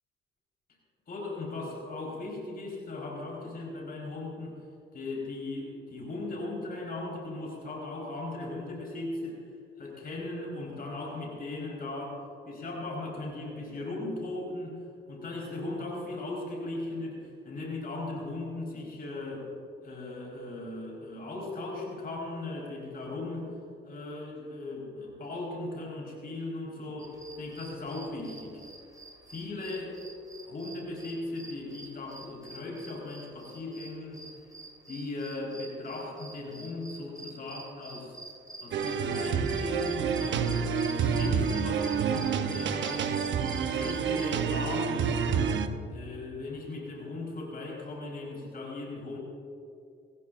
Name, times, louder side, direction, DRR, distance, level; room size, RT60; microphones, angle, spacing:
voice 1, 1.1-4.5 4.9-9.4 9.8-12.2 12.4-14.8 15.1-19.5 19.8-23.5 23.8-28.6 29.3-30.0 30.5-34.2 34.9-38.2 38.6-40.5 40.9-43.1 43.7-45.5 45.9-49.2, left 2 dB, 50° left, -3 dB, 4.6 m, -38 dB
sound 1, 27.0-44.3, right 2 dB, 20° right, 4.2 m, -47 dB
sound 2, 38.7-45.7, right 6 dB, 65° right, 1.0 m, -28 dB
28.5 x 15.0 x 2.6 m, 2.6 s
cardioid pair, 90°, 20 cm